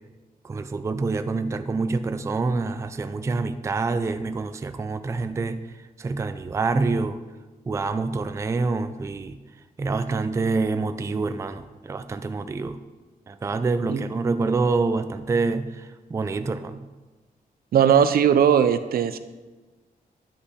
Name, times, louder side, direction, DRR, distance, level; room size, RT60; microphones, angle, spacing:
voice 1, 0.4-5.6 6.0-7.2 7.7-9.4 9.8-12.8 13.3-16.8, right 3 dB, 20° right, 10 dB, 0.3 m, -26 dB
voice 2, 17.7-19.2, right 8 dB, 75° right, 11 dB, 0.5 m, -18 dB
10.0 x 5.6 x 4.1 m, 1.2 s
wide cardioid pair, 165°, 16 cm